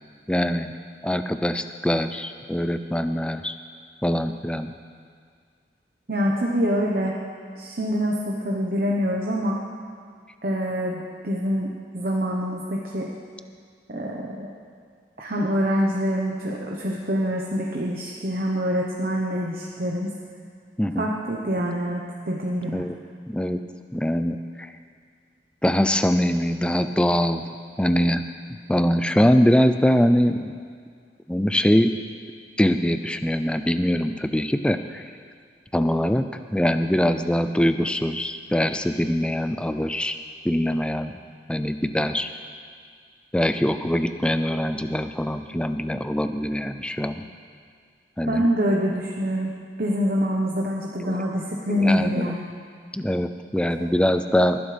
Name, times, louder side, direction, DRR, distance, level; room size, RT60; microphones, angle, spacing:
voice 1, 0.3-0.7 1.0-3.5 4.0-4.7 20.8-21.1 22.7-23.0 23.3-23.6 23.9-24.7 25.6-27.4 27.8-30.5 31.3-31.9 32.6-35.0 35.7-36.2 36.5-40.2 40.4-41.2 41.5-42.3 43.3-47.2 48.2-48.5 51.0-51.1 51.7-52.3 52.9-54.6, equal, 5° left, 9 dB, 0.4 m, -23 dB
voice 2, 6.1-7.2 7.6-9.6 10.4-13.1 13.9-14.5 15.2-20.1 21.0-22.8 48.3-49.5 49.8-52.5 53.8-53.9, equal, 50° right, -2 dB, 1.1 m, -25 dB
20.0 x 11.5 x 3.4 m, 2.1 s
head